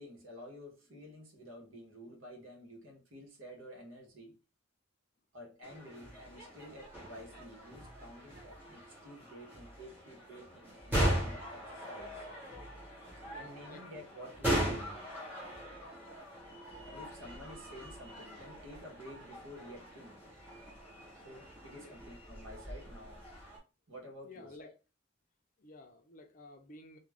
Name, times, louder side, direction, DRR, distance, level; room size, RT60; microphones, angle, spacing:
voice 1, 0.0-4.3 5.3-12.2 13.3-15.0 16.8-20.2 21.2-23.2 23.9-24.7, equal, 80° right, 1.0 m, -51 dB
sound 1, 5.6-23.6, right 1 dB, 10° right, 1.1 m, -39 dB
voice 2, 13.3-13.9 15.6-15.8 21.8-22.0 24.2-24.7 25.6-27.0, left 2 dB, 40° left, 0.5 m, -53 dB
2.4 x 2.2 x 3.3 m
head